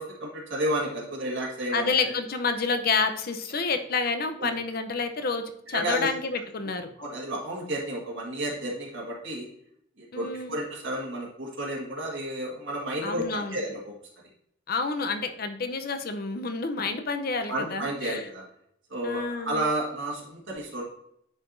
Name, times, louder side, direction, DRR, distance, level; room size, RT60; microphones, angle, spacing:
voice 1, 0.0-1.9 4.4-4.5 5.7-6.1 7.0-9.5 10.1-13.9 17.5-18.4 18.9-20.8, right 1 dB, 70° right, -2 dB, 1.7 m, -31 dB
voice 2, 1.7-6.9 10.1-10.6 13.0-13.6 14.7-18.3 19.0-19.6, left 4 dB, 50° left, 8 dB, 0.7 m, -29 dB
9.6 x 4.8 x 2.6 m, 0.73 s
head